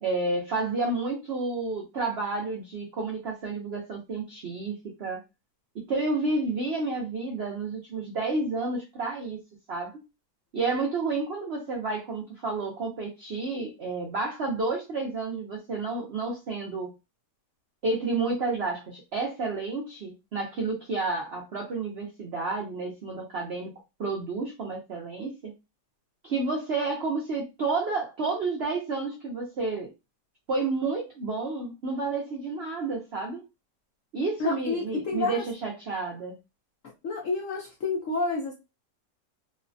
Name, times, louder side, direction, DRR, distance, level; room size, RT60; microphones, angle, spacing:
voice 1, 0.0-5.2 5.9-9.4 9.7-10.0 10.5-16.9 17.8-23.7 24.0-25.5 26.2-29.9 30.5-33.4 34.1-36.4, right 3 dB, 75° right, 0.5 m, -30 dB
voice 2, 34.4-35.4 37.0-38.5, left 3 dB, 65° left, 0.8 m, -29 dB
3.2 x 2.1 x 2.5 m
omnidirectional pair, 1.9 m